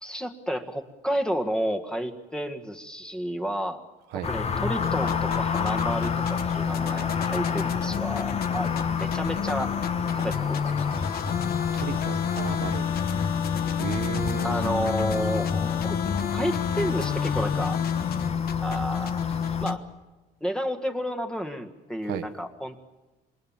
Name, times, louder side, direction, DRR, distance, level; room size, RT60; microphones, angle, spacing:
voice 1, 0.0-3.8 4.3-9.7 10.1-10.8 14.4-16.0 16.3-17.8 18.6-19.2 19.6-19.8 20.4-22.8, equal, 5° left, 5 dB, 1.7 m, -31 dB
sound 1, 4.2-19.7, left 5 dB, 40° left, 1.4 m, -31 dB
sound 2, 4.8-19.8, left 8 dB, 65° left, 1.2 m, -29 dB
voice 2, 11.7-12.9 13.8-14.7 22.0-22.3, right 10 dB, 85° right, 7 dB, 1.4 m, -34 dB
27.0 x 21.5 x 7.4 m, 1.2 s
cardioid pair, 110°, 17 cm